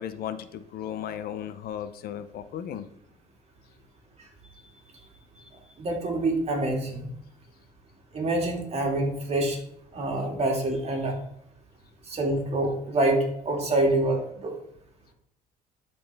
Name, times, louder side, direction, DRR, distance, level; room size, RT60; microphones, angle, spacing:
voice 1, 0.0-2.9, left 9 dB, 65° left, 11 dB, 0.7 m, -35 dB
voice 2, 5.8-7.1 8.1-9.6 9.9-11.2 12.0-14.6, right 2 dB, 40° right, 1 dB, 2.2 m, -26 dB
12.0 x 4.3 x 3.4 m, 0.74 s
cardioid pair, 110°, 17 cm